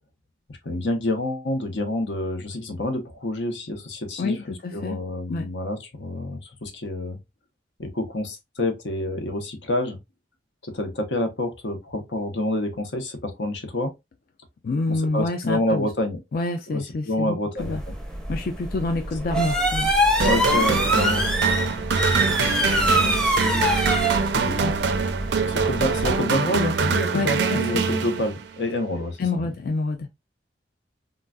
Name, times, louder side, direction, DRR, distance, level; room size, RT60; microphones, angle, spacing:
voice 1, 0.5-4.4 4.7-7.2 7.8-10.0 10.6-13.9 15.1-16.2 16.7-17.8 20.2-24.7 25.3-29.5, left 1 dB, 90° left, 0.9 m, -28 dB
voice 2, 4.2-5.0 5.3-5.5 14.6-15.9 16.3-17.8 18.3-19.9 27.1-27.8 29.2-30.1, left 3 dB, 55° left, 0.4 m, -27 dB
sound 1, 17.6-26.2, equal, 5° left, 0.6 m, -24 dB
sound 2, 20.2-28.6, right 5 dB, 70° right, 0.4 m, -24 dB
3.8 x 2.3 x 2.2 m
head